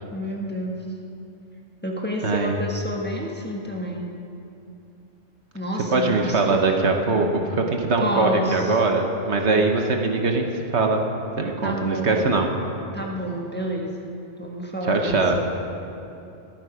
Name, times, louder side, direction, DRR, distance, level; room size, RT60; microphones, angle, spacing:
voice 1, 0.1-0.8 1.8-4.1 5.5-6.8 7.1-7.4 8.0-8.8 11.6-12.2 12.9-15.4, equal, 10° left, -1 dB, 1.2 m, -30 dB
voice 2, 2.2-2.5 5.9-10.5 10.7-11.0 11.4-12.5 14.9-15.4, right 3 dB, 65° right, 3 dB, 1.3 m, -21 dB
22.0 x 9.0 x 5.0 m, 2.7 s
omnidirectional pair, 1.3 m